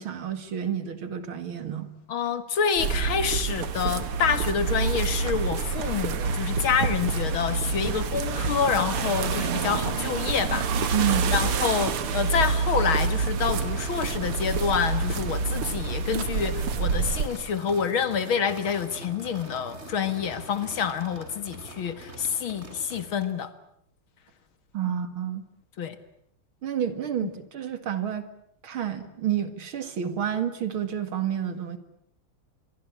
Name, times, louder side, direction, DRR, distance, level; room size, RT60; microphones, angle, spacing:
voice 1, 0.0-1.9 10.9-11.3 24.7-25.4 26.6-28.3 28.6-31.8, right 9 dB, 70° right, 11 dB, 2.9 m, -29 dB
voice 2, 2.1-10.9 11.3-23.5 24.9-25.0 25.8-26.0, left 7 dB, 70° left, 12 dB, 2.4 m, -27 dB
sound 1, 2.8-17.3, right 5 dB, 85° right, 2.4 m, -27 dB
sound 2, 13.4-23.4, right 1 dB, 30° right, 4.2 m, -43 dB
26.0 x 22.5 x 8.6 m, 0.71 s
omnidirectional pair, 2.4 m